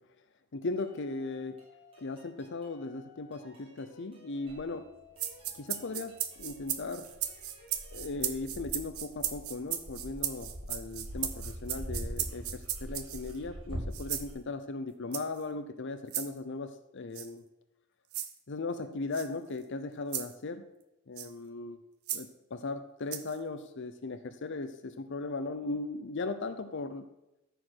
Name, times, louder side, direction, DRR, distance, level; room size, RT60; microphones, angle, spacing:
voice 1, 0.5-1.6 2.0-4.9 5.5-7.1 7.9-17.4 18.5-20.7 21.1-21.8 22.1-27.1, left 3 dB, 55° left, 9 dB, 0.6 m, -38 dB
sound 1, 0.8-8.2, left 3 dB, 25° right, 3.3 m, -58 dB
Dog, 4.5-4.6 5.4-5.5 6.4-14.3, equal, 70° right, 3.4 m, -42 dB
sound 2, 5.2-13.4 13.9-14.3 15.1-15.4 16.1-16.3 17.1-17.3 18.1-18.3 19.1-19.3 20.1-20.3 21.2-21.3 22.1-22.2 23.1-23.4, right 11 dB, 85° right, 0.9 m, -36 dB
14.0 x 5.0 x 6.0 m, 0.93 s
head